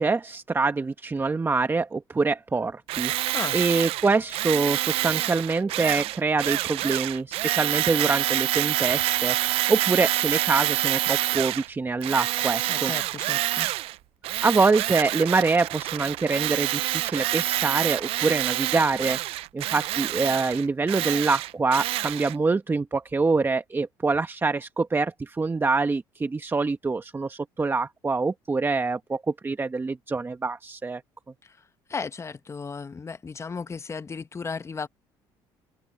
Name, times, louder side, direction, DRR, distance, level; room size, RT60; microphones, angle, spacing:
voice 1, 0.0-12.9 14.4-19.2 19.5-31.0, right 4 dB, 20° right, 1.3 m, -25 dB
Tools, 2.9-11.7 12.0-14.0 14.2-22.3, right 16 dB, 70° right, 0.7 m, -27 dB
voice 2, 12.7-13.7 31.4-34.9, left 5 dB, 30° left, 1.2 m, -35 dB
supercardioid pair, 80°, 10 cm